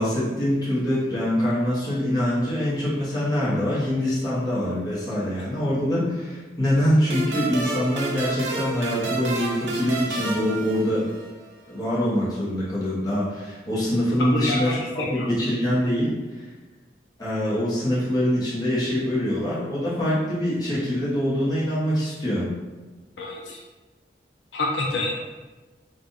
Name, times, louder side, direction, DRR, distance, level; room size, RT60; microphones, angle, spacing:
voice 1, 0.0-11.1 11.7-14.8 15.1-16.5 17.2-22.5, equal, 20° left, -9 dB, 1.0 m, -24 dB
sound 1, 7.1-11.5, right 3 dB, 80° right, 0.6 m, -30 dB
voice 2, 14.3-15.3 23.2-23.6 24.5-25.2, left 2 dB, 85° left, -2 dB, 0.6 m, -27 dB
3.7 x 2.5 x 2.6 m, 1.3 s
head